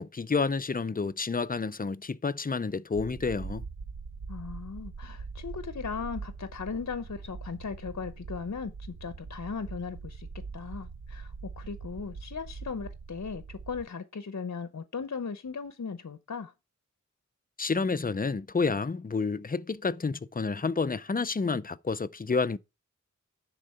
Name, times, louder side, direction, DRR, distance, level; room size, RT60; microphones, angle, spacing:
voice 1, 0.0-3.6 17.6-22.6, left 4 dB, 30° left, 0.5 m, -29 dB
sound 1, 2.9-13.9, right 4 dB, 90° right, 0.8 m, -42 dB
voice 2, 4.3-10.3 10.5-16.5, left 5 dB, 60° left, 0.8 m, -37 dB
10.0 x 3.8 x 5.5 m
wide cardioid pair, 55°, 31 cm